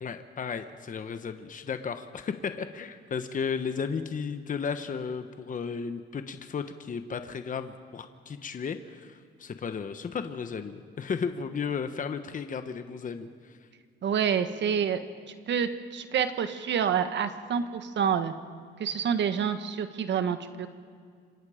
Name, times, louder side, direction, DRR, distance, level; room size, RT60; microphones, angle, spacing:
voice 1, 0.0-13.6, left 6 dB, 40° left, 9 dB, 1.1 m, -34 dB
voice 2, 14.0-15.0 15.3-18.3 18.8-20.7, right 7 dB, 65° right, 9 dB, 1.4 m, -28 dB
27.0 x 26.0 x 5.1 m, 2.1 s
cardioid pair, 90°, 20 cm